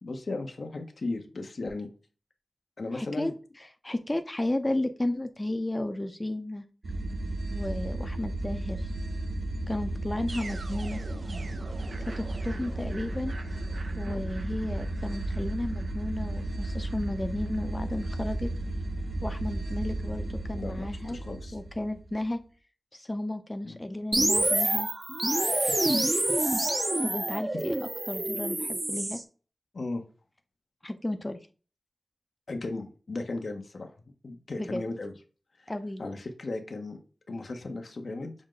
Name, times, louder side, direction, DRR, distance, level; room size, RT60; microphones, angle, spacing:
voice 1, 0.0-1.9 2.8-3.3 14.0-14.3 20.5-21.6 23.6-23.8 25.7-26.2 29.7-30.0 32.5-33.9 34.2-35.1 35.6-35.7 36.0-37.0 37.3-38.3, left 2 dB, 75° left, 5 dB, 0.7 m, -36 dB
voice 2, 2.9-3.3 3.8-6.6 7.5-8.9 9.7-11.0 12.2-13.4 14.0-18.5 19.2-21.2 21.5-22.4 22.9-24.9 27.0-27.8 28.1-29.2 30.8-31.4 34.6-34.8 35.7-36.1, left 1 dB, 25° left, 7 dB, 0.5 m, -33 dB
sound 1, 6.8-22.2, right 1 dB, 75° right, 0.5 m, -34 dB
sound 2, 24.1-29.2, right 1 dB, 40° right, 0.7 m, -27 dB
6.2 x 2.1 x 3.7 m, 0.36 s
cardioid pair, 50°, 0 cm